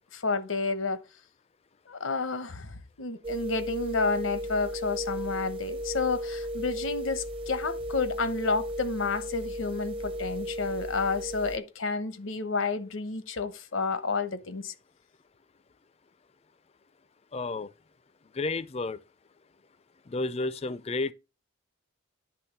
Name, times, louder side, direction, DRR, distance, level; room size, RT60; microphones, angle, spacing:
voice 1, 0.1-1.0 1.9-14.7, left 4 dB, 85° left, 1.0 m, -30 dB
sound 1, 3.2-11.6, equal, 25° right, 0.7 m, -35 dB
voice 2, 17.3-17.7 18.3-19.0 20.1-21.1, left 3 dB, 30° left, 0.4 m, -31 dB
10.0 x 3.6 x 5.9 m
head